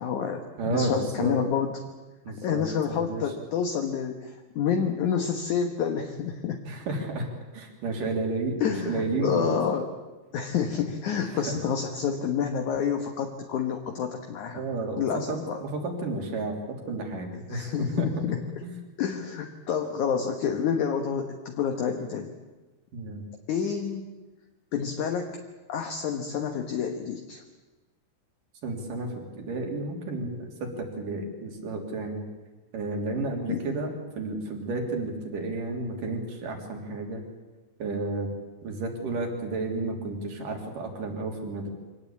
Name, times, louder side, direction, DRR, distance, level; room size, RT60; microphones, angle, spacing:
voice 1, 0.0-1.8 2.4-6.6 8.6-9.9 10.3-14.6 15.0-15.6 17.5-18.4 19.0-22.3 23.5-24.1 24.7-25.4 25.7-27.4 33.5-33.6, left 7 dB, 60° left, 4 dB, 2.5 m, -28 dB
voice 2, 0.6-1.3 2.2-3.4 6.7-7.3 7.5-9.5 11.3-11.7 14.5-18.1 18.6-18.8 22.9-23.3 28.6-32.2 32.7-37.2 37.8-38.3 38.6-41.7, right 3 dB, 60° right, 2 dB, 4.7 m, -32 dB
25.0 x 18.5 x 8.6 m, 1.2 s
omnidirectional pair, 4.4 m